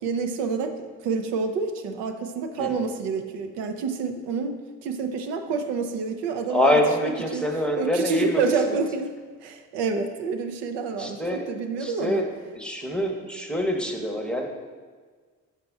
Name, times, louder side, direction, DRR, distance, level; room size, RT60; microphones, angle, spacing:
voice 1, 0.0-7.5 7.8-9.1 9.4-12.2, right 4 dB, 75° right, 6 dB, 0.6 m, -28 dB
voice 2, 6.5-8.4 8.7-8.8 11.0-11.5 11.8-12.3 12.5-14.5, left 1 dB, ahead, 2 dB, 0.9 m, -25 dB
5.5 x 5.0 x 3.5 m, 1.5 s
hypercardioid pair, 45°, 43 cm